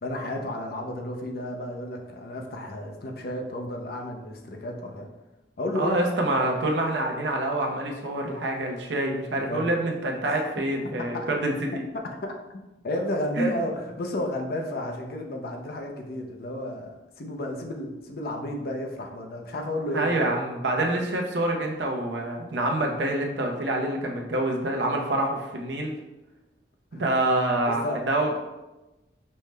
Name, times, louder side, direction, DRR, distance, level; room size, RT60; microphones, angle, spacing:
voice 1, 0.0-5.1 5.6-6.1 9.4-9.7 10.2-10.3 11.1-11.3 12.2-12.3 12.8-16.9 17.2-20.1 26.9-27.0 27.5-28.0, left 1 dB, 60° left, 2 dB, 0.6 m, -32 dB
voice 2, 5.7-11.8 13.4-13.5 19.9-25.9 26.9-28.4, right 1 dB, 80° right, 1 dB, 0.6 m, -26 dB
5.4 x 2.1 x 3.3 m, 1.0 s
head